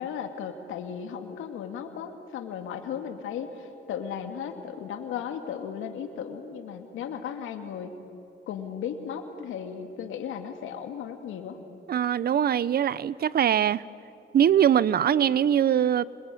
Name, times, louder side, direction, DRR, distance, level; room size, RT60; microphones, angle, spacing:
voice 1, 0.0-7.9 8.5-11.6, left 8 dB, 85° left, 6 dB, 2.3 m, -36 dB
voice 2, 11.9-13.8 14.3-16.0, right 9 dB, 50° right, 20 dB, 0.7 m, -22 dB
26.5 x 21.5 x 9.2 m, 2.7 s
cardioid pair, 90°, 20 cm